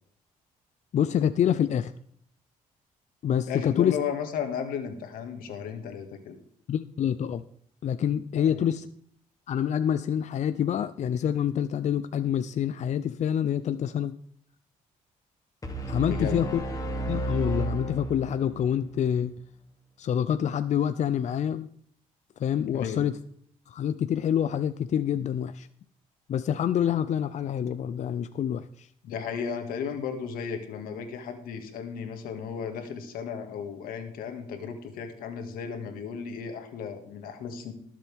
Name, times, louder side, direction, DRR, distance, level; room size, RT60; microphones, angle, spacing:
voice 1, 0.9-1.9 3.2-4.0 6.7-7.4 7.8-8.9 9.5-14.2 15.9-16.5 17.1-19.3 20.0-21.7 22.4-23.1 23.7-25.7 26.3-28.9, left 9 dB, 55° left, 12 dB, 0.6 m, -26 dB
voice 2, 3.5-6.4 8.4-8.7 16.0-16.4 22.7-23.0 29.0-37.7, left 7 dB, 85° left, 6 dB, 2.0 m, -35 dB
sound 1, 15.6-18.7, right 2 dB, 25° left, 2.7 m, -32 dB
20.5 x 7.5 x 3.6 m, 0.63 s
cardioid pair, 80°, 15 cm